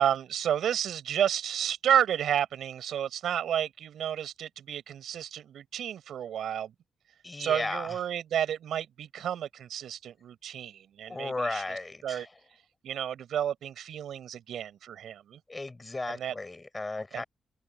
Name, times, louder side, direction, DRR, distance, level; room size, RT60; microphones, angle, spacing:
voice 1, 0.0-6.7 7.4-12.3 12.8-15.4 16.1-16.3 17.1-17.2, right 10 dB, 85° right, 5.6 m, -31 dB
voice 2, 7.2-8.0 11.1-12.3 15.5-17.2, left 2 dB, 20° left, 7.4 m, -35 dB
cardioid pair, 100°, 0 cm